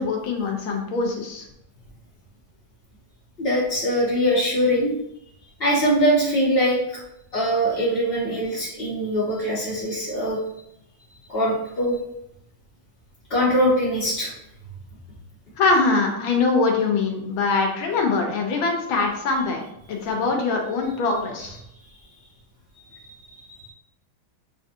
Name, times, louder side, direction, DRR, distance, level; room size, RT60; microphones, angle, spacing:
voice 1, 0.0-1.4 15.6-21.6, left 3 dB, 75° left, 1 dB, 1.7 m, -23 dB
voice 2, 3.4-4.9 5.6-7.0 7.3-10.4 11.3-12.0 13.3-14.3 22.7-23.7, equal, 50° left, -6 dB, 0.7 m, -22 dB
6.6 x 2.7 x 2.6 m, 0.77 s
omnidirectional pair, 2.3 m